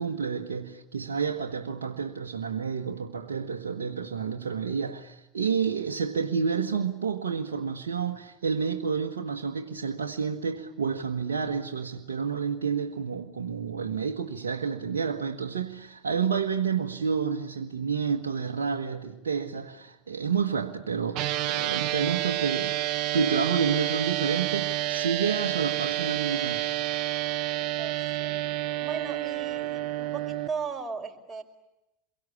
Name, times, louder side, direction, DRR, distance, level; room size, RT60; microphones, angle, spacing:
voice 1, 0.0-22.8 23.1-26.7, right 6 dB, 80° right, 1.5 m, -29 dB
sound 1, 21.1-30.5, right 14 dB, 55° right, 1.1 m, -29 dB
voice 2, 27.8-28.5 28.8-31.4, right 5 dB, 20° right, 5.4 m, -37 dB
28.5 x 23.0 x 8.6 m
hypercardioid pair, 80°, 0 cm